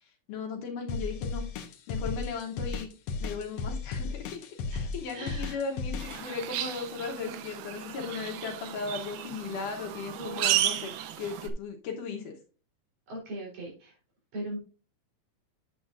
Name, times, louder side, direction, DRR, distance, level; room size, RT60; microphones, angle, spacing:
voice 1, 0.0-1.4 1.9-2.9 3.2-12.4, left 5 dB, 70° left, 2 dB, 2.4 m, -37 dB
sound 1, 0.9-6.2, left 4 dB, 90° left, 1.4 m, -34 dB
voice 2, 4.7-5.6 9.3-9.5 10.2-10.8 13.1-14.0 14.3-14.6, right 1 dB, 65° right, -2 dB, 5.3 m, -40 dB
sound 2, 6.0-11.5, right 12 dB, 90° right, 2.6 m, -33 dB
9.2 x 7.8 x 2.5 m, 0.36 s
omnidirectional pair, 4.1 m